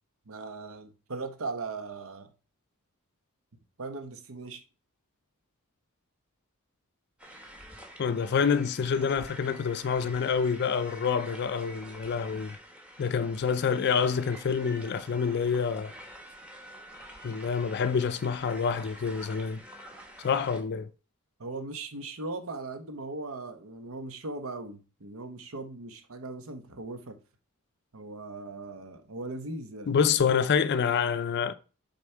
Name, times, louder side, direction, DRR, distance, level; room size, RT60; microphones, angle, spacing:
voice 1, 0.3-2.3 3.8-4.6 21.4-27.2 27.9-30.0, right 3 dB, 75° right, 1.0 m, -39 dB
sound 1, 7.2-20.6, equal, 5° right, 1.4 m, -47 dB
voice 2, 8.0-12.6 13.0-15.9 17.2-19.6 20.2-20.9 29.9-31.5, left 6 dB, 50° left, 0.4 m, -27 dB
7.0 x 4.2 x 4.5 m
head